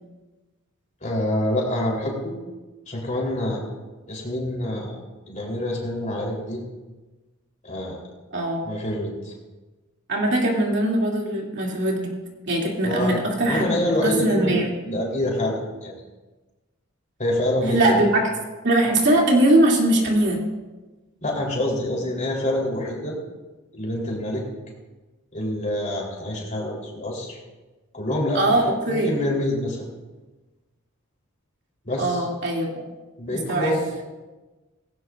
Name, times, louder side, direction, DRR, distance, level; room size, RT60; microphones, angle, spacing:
voice 1, 1.0-2.3 2.9-3.6 4.1-5.0 5.3-6.7 7.6-8.0 8.6-9.3 12.8-13.1 13.4-14.6 14.8-16.0 17.2-18.0 21.2-23.1 23.7-24.4 25.3-27.4 27.9-29.9 31.8-32.3 33.2-33.8, left 1 dB, 35° left, -2 dB, 3.8 m, -26 dB
voice 2, 8.3-8.7 10.1-12.1 12.5-13.7 14.0-14.8 17.7-18.1 18.6-20.4 28.3-29.1 32.0-32.9 33.3-33.7, right 1 dB, 55° right, -2 dB, 2.8 m, -21 dB
18.0 x 17.0 x 2.6 m, 1.2 s
head